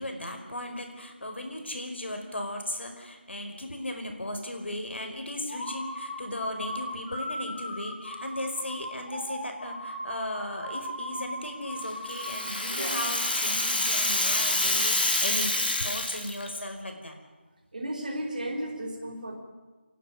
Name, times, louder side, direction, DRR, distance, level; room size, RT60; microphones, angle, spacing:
voice 1, 0.0-17.2, left 1 dB, 70° left, 4 dB, 5.0 m, -36 dB
sound 1, 5.5-12.7, equal, 35° left, 5.4 m, -37 dB
Rattle (instrument), 11.8-16.6, left 2 dB, 50° left, 4.0 m, -27 dB
voice 2, 17.7-19.4, right 1 dB, 40° right, 2 dB, 4.3 m, -34 dB
28.5 x 11.5 x 9.4 m, 1.3 s
figure-of-eight pair, 175°, 6 cm